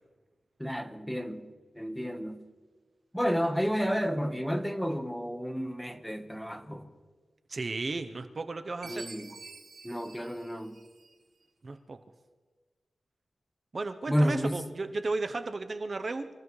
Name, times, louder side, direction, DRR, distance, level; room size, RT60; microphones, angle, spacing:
voice 1, 0.6-1.5 1.7-2.4 3.1-6.9 8.8-9.3 9.8-10.8 14.1-14.6, equal, 5° left, 1.2 m, -31 dB
voice 2, 7.5-9.1 11.6-12.0 13.7-16.3, right 3 dB, 45° right, 0.7 m, -34 dB
Chime, 8.8-11.4, right 4 dB, 70° right, 2.1 m, -49 dB
26.0 x 15.5 x 3.2 m
wide cardioid pair, 115°, 0 cm